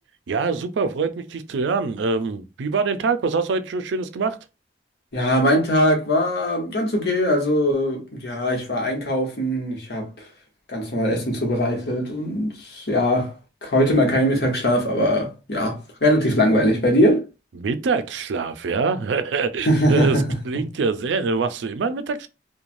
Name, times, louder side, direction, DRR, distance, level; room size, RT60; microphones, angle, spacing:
voice 1, 0.3-4.4 17.6-20.2 20.4-22.3, right 4 dB, 85° right, 0.4 m, -24 dB
voice 2, 5.1-10.1 10.7-13.3 13.6-17.2 19.6-20.2, equal, 65° left, 1.0 m, -21 dB
3.1 x 2.2 x 2.5 m
head